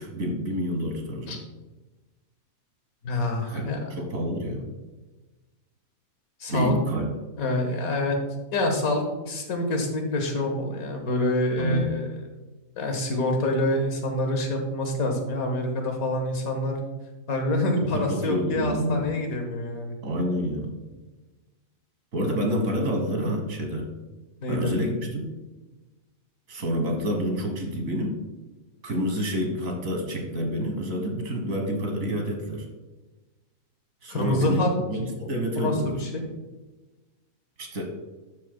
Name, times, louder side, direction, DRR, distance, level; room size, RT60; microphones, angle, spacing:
voice 1, 0.0-1.4 3.5-3.6 3.9-4.7 6.5-7.1 11.6-11.9 17.9-19.0 20.0-20.7 22.1-23.9 24.5-25.3 26.5-28.2 28.8-32.7 34.0-36.0 37.6-37.8, equal, 70° right, 3 dB, 1.8 m, -28 dB
voice 2, 3.0-4.0 6.4-6.7 7.4-8.2 8.5-12.1 12.8-16.8 17.3-20.0 24.4-24.7 34.1-34.7 35.6-36.3, left 1 dB, 85° left, 3 dB, 1.8 m, -26 dB
11.5 x 7.7 x 2.2 m, 1.2 s
omnidirectional pair, 1.5 m